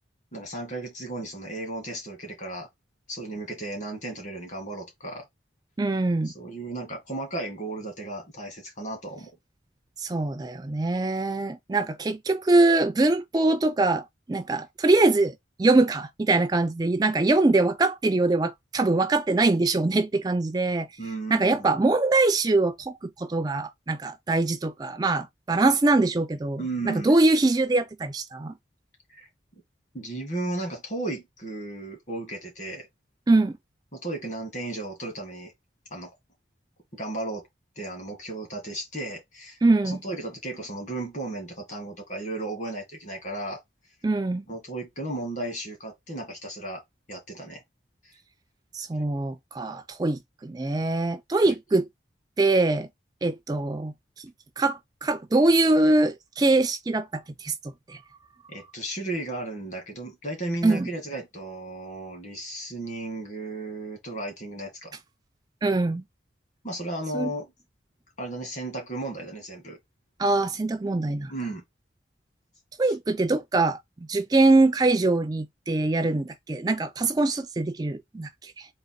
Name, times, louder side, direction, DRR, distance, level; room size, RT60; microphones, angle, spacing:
voice 1, 0.3-2.7 3.1-5.3 6.2-9.3 21.0-21.7 26.6-27.1 29.1-29.3 29.9-32.9 33.9-35.5 35.9-36.1 36.9-37.5 37.8-39.6 39.8-43.6 44.5-46.8 47.1-47.6 51.5-51.6 58.5-65.0 66.6-67.5 68.2-69.8 71.3-71.6, right 2 dB, 40° left, 2.1 m, -34 dB
voice 2, 5.8-6.3 10.0-15.3 15.6-20.9 21.3-28.5 33.3-33.5 39.6-40.0 44.0-44.4 48.7-51.8 52.4-52.9 53.2-54.3 54.6-57.5 57.9-58.0 60.6-60.9 65.6-66.0 67.1-67.3 70.2-71.3 72.8-73.8 74.1-78.7, right 2 dB, 20° right, 0.3 m, -23 dB
3.8 x 3.0 x 4.5 m
head